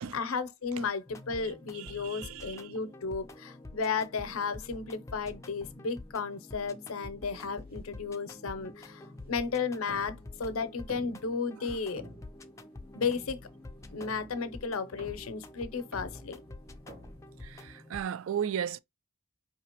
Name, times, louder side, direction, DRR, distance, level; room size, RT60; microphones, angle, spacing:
voice 1, 0.1-12.0 12.9-13.4 13.9-16.4, left 5 dB, 90° left, 0.6 m, -34 dB
sound 1, 1.1-18.0, left 2 dB, 15° left, 0.3 m, -48 dB
voice 2, 1.7-2.7 17.4-18.8, right 8 dB, 75° right, 0.3 m, -35 dB
sound 2, 7.3-18.0, equal, 45° right, 1.3 m, -53 dB
5.0 x 2.9 x 2.9 m
head